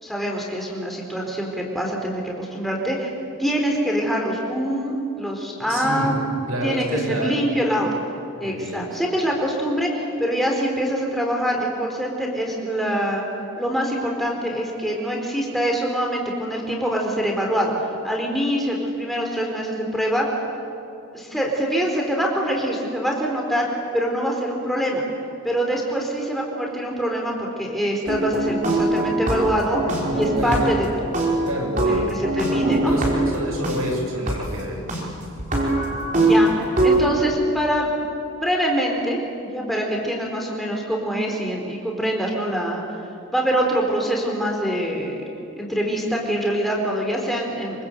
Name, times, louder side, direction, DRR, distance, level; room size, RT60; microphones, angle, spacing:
voice 1, 0.0-3.1 3.4-6.2 6.6-7.9 8.4-13.2 13.6-17.7 18.0-20.3 21.1-23.7 23.9-25.0 25.4-29.8 30.1-31.5 31.9-32.9 36.2-37.9 38.4-39.2 39.4-42.8 43.3-45.2 45.6-47.9, equal, ahead, -1 dB, 4.4 m, -24 dB
voice 2, 5.6-6.2 6.5-7.3 8.4-9.0 30.4-30.7 31.5-32.3 32.8-34.9, equal, 85° right, 2 dB, 7.0 m, -28 dB
sound 1, 28.1-30.9 31.1-33.8 34.3-34.4 34.9-35.0 35.4-37.0, right 2 dB, 35° right, 5.2 m, -21 dB
26.5 x 25.5 x 8.3 m, 2.7 s
head